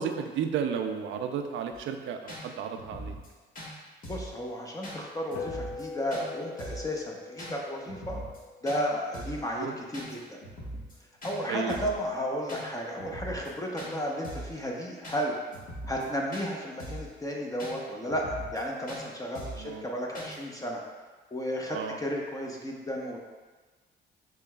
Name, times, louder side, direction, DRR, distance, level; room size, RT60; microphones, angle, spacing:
voice 1, 0.0-3.1 9.6-9.8 11.5-11.9 19.6-19.8 21.7-22.0, right 7 dB, 75° right, 6 dB, 0.5 m, -33 dB
sound 1, 1.7-1.8 2.3-2.4 2.7-3.3 3.5-3.7 4.0-4.3 4.8-5.0 5.3-5.8 6.1-6.2 6.6-6.9 7.4-7.5 7.9-8.4 8.7-8.8 9.1-9.4 9.9-10.1 10.4-10.9 11.2-11.4 11.7-12.0 12.5-12.6 13.0-13.5 13.8-13.9 14.2-14.5 15.0-15.2 15.5-16.0 16.3-16.5 16.8-17.1 17.6-17.7 18.1-18.6 18.9-19.0 19.3-19.7 20.1-20.4, equal, 45° left, 1.3 m, -41 dB
voice 2, 4.0-8.2 8.6-10.4 11.2-15.4 15.9-20.8 21.3-23.2, equal, 15° left, -1 dB, 0.7 m, -33 dB
sound 2, 5.4-10.0, left 4 dB, 75° left, 0.5 m, -42 dB
6.6 x 3.2 x 2.3 m, 1.3 s
cardioid pair, 90°, 20 cm